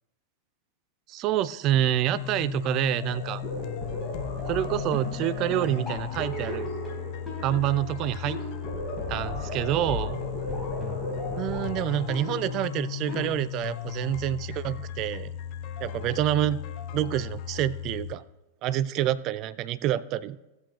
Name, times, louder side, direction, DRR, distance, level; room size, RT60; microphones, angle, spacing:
voice 1, 1.1-3.4 4.5-6.7 7.4-8.4 9.1-10.2 11.4-15.3 15.8-16.6 16.9-18.2 18.6-20.4, right 12 dB, 40° right, 17 dB, 0.4 m, -27 dB
sound 1, 2.1-18.1, left 10 dB, 45° left, 0.6 m, -36 dB
sound 2, 3.0-13.3, left 1 dB, 10° left, 3.6 m, -36 dB
15.0 x 7.9 x 3.1 m, 0.95 s
figure-of-eight pair, 90°, 0 cm